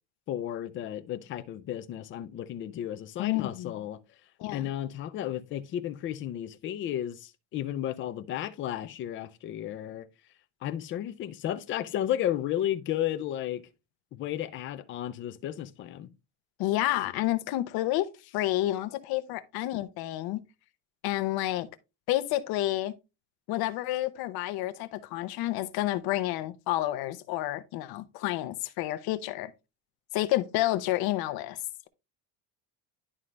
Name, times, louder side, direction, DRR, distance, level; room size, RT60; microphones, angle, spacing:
voice 1, 0.3-4.0 4.5-10.1 10.6-13.7 14.1-16.1, left 11 dB, 30° left, 0.4 m, -33 dB
voice 2, 3.2-3.7 4.4-4.7 16.6-20.4 21.0-21.7 22.1-22.9 23.5-29.5 30.1-31.6, left 15 dB, 50° left, 0.9 m, -29 dB
11.0 x 3.7 x 3.2 m
cardioid pair, 160°, 48 cm